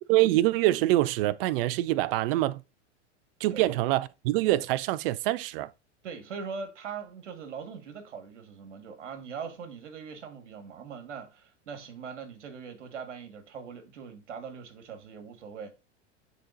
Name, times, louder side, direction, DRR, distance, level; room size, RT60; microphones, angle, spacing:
voice 1, 0.1-2.6 3.4-5.7, right 16 dB, 50° right, 0.5 m, -25 dB
voice 2, 6.0-15.7, right 6 dB, 75° right, 1.7 m, -41 dB
10.0 x 3.9 x 2.6 m
hypercardioid pair, 100°, 36 cm